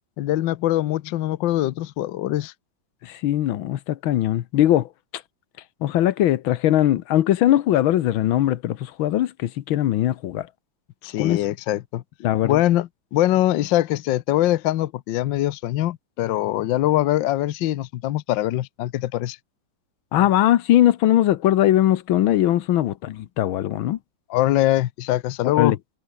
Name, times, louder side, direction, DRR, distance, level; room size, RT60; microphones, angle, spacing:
voice 1, 0.2-2.5 11.0-12.0 12.4-19.4 24.3-25.8, left 14 dB, 70° left, 1.4 m, -23 dB
voice 2, 3.0-4.9 5.8-10.5 11.2-11.4 12.2-12.6 20.1-24.0 25.6-25.8, left 13 dB, 90° left, 1.7 m, -20 dB
omnidirectional pair, 2.2 m